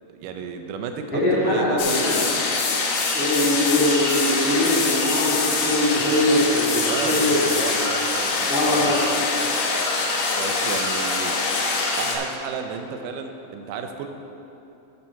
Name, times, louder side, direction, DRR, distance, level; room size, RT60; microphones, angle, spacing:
voice 1, 0.1-2.3 6.8-9.0 10.3-11.4 12.0-14.1, right 6 dB, 85° right, 6 dB, 2.3 m, -32 dB
voice 2, 1.1-2.2 3.1-7.6 8.5-9.1, left 1 dB, 5° right, -9 dB, 1.5 m, -22 dB
sound 1, 1.8-12.2, left 3 dB, 65° left, 1.5 m, -24 dB
sound 2, 1.9-2.0 2.9-3.0 3.8-4.1 5.7-5.8 7.8-8.0 8.9-9.2 10.0-10.2 11.5-11.6 12.2-12.3 12.6-12.7, left 2 dB, 90° left, 3.4 m, -43 dB
8.8 x 7.6 x 4.7 m, 3.0 s
omnidirectional pair, 3.7 m